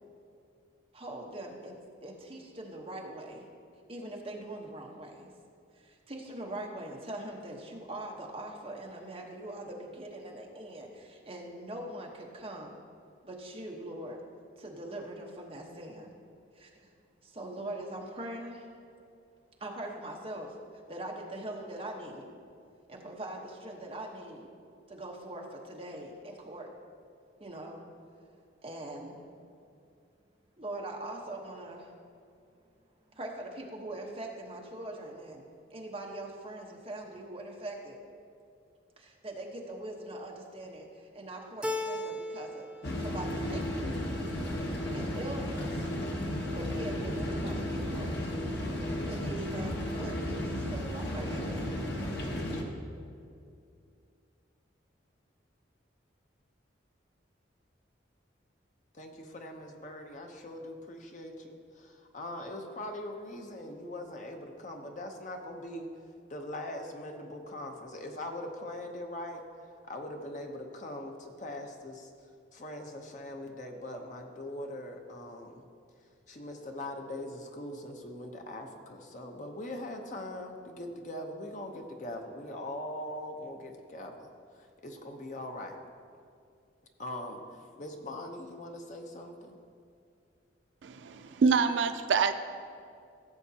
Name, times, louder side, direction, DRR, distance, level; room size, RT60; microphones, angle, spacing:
voice 1, 0.9-1.8 2.0-3.5 3.9-5.3 5.7-12.7 13.2-14.2 14.6-16.1 16.5-16.9 17.2-18.7 19.6-20.5 20.9-22.3 22.9-24.5 24.9-26.7 27.4-27.8 28.6-29.2 30.6-31.9 33.1-35.4 35.7-38.0 39.0-42.7 43.0-43.9 44.9-45.9 46.5-48.2 49.1-51.7, right 1 dB, 30° right, -1 dB, 1.1 m, -42 dB
Keyboard (musical), 41.6-42.7 43.0-43.8, left 1 dB, 5° right, 0.4 m, -36 dB
sound 1, 42.8-52.6, left 1 dB, 60° left, 1.1 m, -34 dB
voice 2, 58.9-65.9 66.3-69.4 69.9-72.1 72.5-75.6 76.3-84.3 84.5-85.8 87.0-87.4 87.8-89.6, left 1 dB, 40° left, 3 dB, 0.8 m, -41 dB
voice 3, 90.8-92.3, right 5 dB, 75° right, 10 dB, 0.4 m, -26 dB
15.5 x 7.1 x 2.8 m, 2.4 s
head